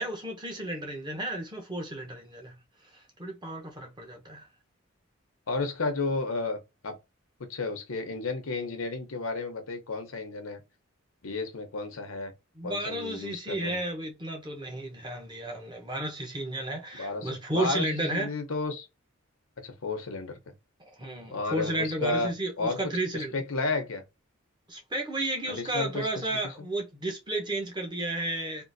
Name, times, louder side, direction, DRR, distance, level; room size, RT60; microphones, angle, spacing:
voice 1, 0.0-2.6 3.2-4.5 12.6-18.3 21.0-23.3 24.7-28.6, right 1 dB, 20° right, 0.8 m, -33 dB
voice 2, 5.5-6.6 6.8-6.9 7.5-10.6 11.2-12.3 12.6-13.8 16.9-18.9 19.6-20.5 21.3-22.3 22.6-22.8 23.1-24.0 25.5-26.1 26.4-26.5, left 3 dB, 90° left, 0.8 m, -32 dB
3.7 x 2.5 x 2.5 m
head